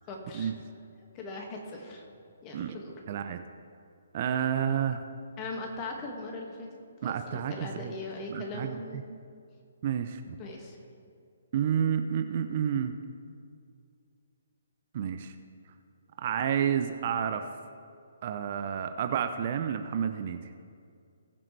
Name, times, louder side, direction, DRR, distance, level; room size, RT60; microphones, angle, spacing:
voice 1, 0.1-0.5 1.1-2.0 2.4-3.0 5.4-6.7 7.0-9.1 10.4-10.8, left 2 dB, 25° left, 0 dB, 2.0 m, -40 dB
voice 2, 3.1-3.4 4.1-5.0 7.0-7.9 8.3-9.0 9.8-10.4 11.5-13.0 14.9-15.3 16.2-17.5 18.2-20.4, right 8 dB, 45° right, 8 dB, 0.7 m, -30 dB
20.5 x 7.2 x 3.4 m, 2.4 s
figure-of-eight pair, 135°, 0 cm